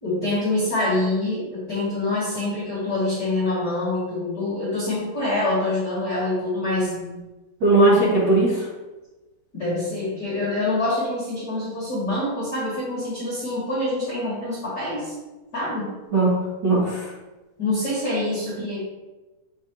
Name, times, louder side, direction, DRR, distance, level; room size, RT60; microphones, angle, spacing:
voice 1, 0.0-6.9 9.5-15.1 15.5-16.0 17.6-18.8, left 2 dB, 40° left, -9 dB, 1.5 m, -25 dB
voice 2, 7.6-8.6 16.1-17.1, right 2 dB, 50° right, -10 dB, 1.3 m, -18 dB
7.9 x 4.6 x 2.9 m, 1.1 s
omnidirectional pair, 4.7 m